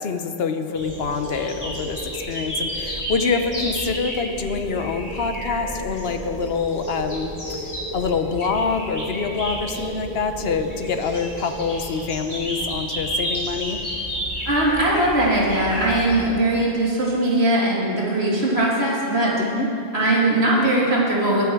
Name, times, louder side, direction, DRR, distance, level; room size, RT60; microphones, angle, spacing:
voice 1, 0.0-13.8 19.4-19.7, left 5 dB, 75° left, 8 dB, 1.0 m, -26 dB
sound 1, 0.7-16.3, equal, 35° left, 2.9 m, -31 dB
voice 2, 14.4-21.5, right 1 dB, 90° right, -5 dB, 2.9 m, -20 dB
20.5 x 7.2 x 4.7 m, 2.6 s
omnidirectional pair, 1.1 m